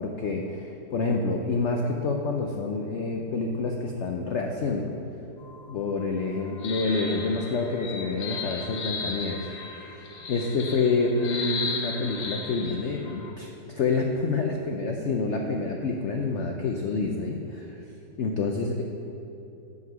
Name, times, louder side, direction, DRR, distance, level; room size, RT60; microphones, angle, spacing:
voice 1, 0.0-4.9 5.7-9.4 10.3-17.8 18.2-18.8, left 3 dB, 75° left, 2 dB, 0.6 m, -28 dB
sound 1, 5.4-13.3, left 4 dB, 60° left, 1.1 m, -36 dB
7.8 x 5.5 x 6.0 m, 2.9 s
omnidirectional pair, 1.9 m